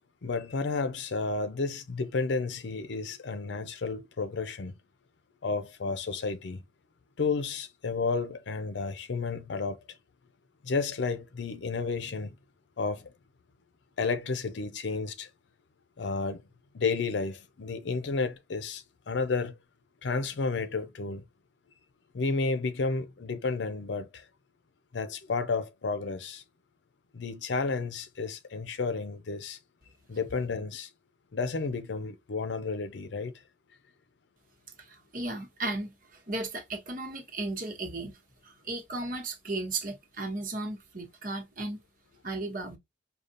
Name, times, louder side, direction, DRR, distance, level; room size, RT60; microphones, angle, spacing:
voice 1, 0.2-4.8 5.4-6.6 7.2-9.8 10.6-12.3 12.8-13.1 14.0-15.3 16.0-16.4 16.7-19.6 20.0-21.2 22.1-24.2 24.9-26.4 27.1-29.6 30.1-30.9 31.3-33.3, left 4 dB, 75° left, 0.5 m, -31 dB
voice 2, 34.8-38.2 38.4-41.8 42.2-42.8, right 2 dB, 50° right, 1.2 m, -35 dB
5.0 x 2.4 x 2.5 m
head